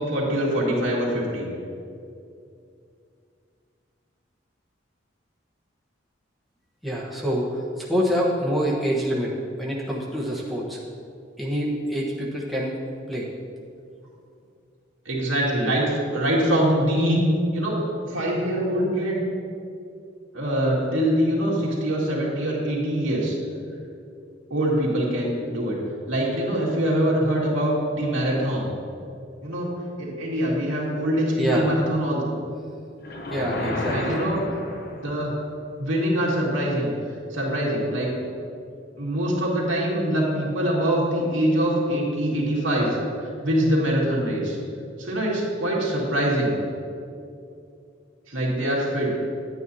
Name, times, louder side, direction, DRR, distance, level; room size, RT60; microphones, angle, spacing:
voice 1, 0.0-1.4 15.1-15.9 16.1-17.2 17.5-19.2 20.3-23.3 24.5-25.8 26.1-28.7 29.4-29.7 30.0-32.4 33.6-34.4 35.0-35.3 35.8-36.9 37.3-38.1 39.0-44.6 45.0-46.6 48.3-49.1, right 1 dB, 90° right, -4 dB, 2.1 m, -24 dB
voice 2, 6.8-10.8 11.4-12.8 13.1-13.3 31.4-31.7 33.3-34.2, equal, ahead, -6 dB, 1.1 m, -26 dB
sound 1, 33.0-35.4, left 1 dB, 50° left, 0.8 m, -31 dB
10.5 x 9.1 x 2.8 m, 2.4 s
head